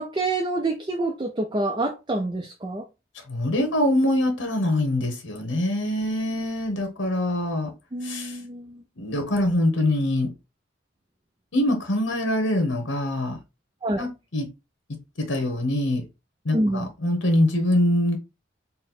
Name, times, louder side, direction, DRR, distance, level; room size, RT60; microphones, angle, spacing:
voice 1, 0.0-2.8 7.9-8.8 13.8-14.1 16.5-16.9, right 2 dB, 25° right, 0.4 m, -27 dB
voice 2, 3.1-7.7 8.0-8.4 9.0-10.3 11.5-13.4 14.0-14.5 15.3-16.0 16.4-18.2, left 1 dB, 80° left, 1.1 m, -24 dB
4.1 x 2.1 x 4.2 m
head